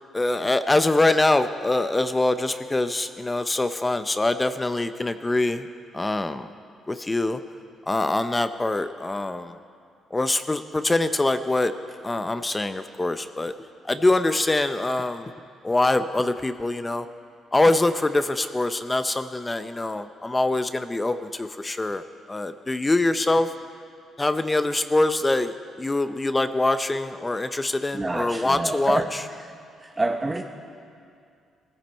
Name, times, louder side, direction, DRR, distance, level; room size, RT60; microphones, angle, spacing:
voice 1, 0.1-5.6 5.9-6.5 6.9-7.4 7.9-9.5 10.1-11.7 12.0-13.5 13.9-15.3 15.6-17.1 17.5-22.0 22.3-23.5 24.2-25.5 25.8-29.0, left 2 dB, 20° left, 10 dB, 0.6 m, -24 dB
voice 2, 27.9-29.1 29.8-30.4, right 2 dB, 20° right, 4 dB, 0.8 m, -27 dB
18.5 x 15.0 x 4.4 m, 2.3 s
cardioid pair, 90°, 0 cm